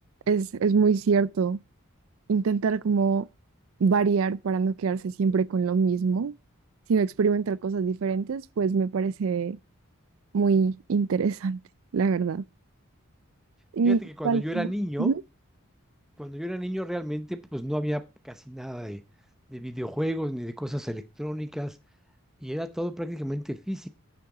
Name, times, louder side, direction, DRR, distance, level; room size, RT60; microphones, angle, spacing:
voice 1, 0.3-1.6 2.3-3.3 3.8-6.3 6.9-9.6 10.3-11.6 11.9-12.4 13.7-14.7 15.0-15.2, right 5 dB, 65° right, 0.4 m, -24 dB
voice 2, 13.8-15.1 16.2-19.0 19.5-21.8 22.4-23.9, equal, ahead, 0.6 m, -32 dB
10.0 x 6.7 x 4.8 m
head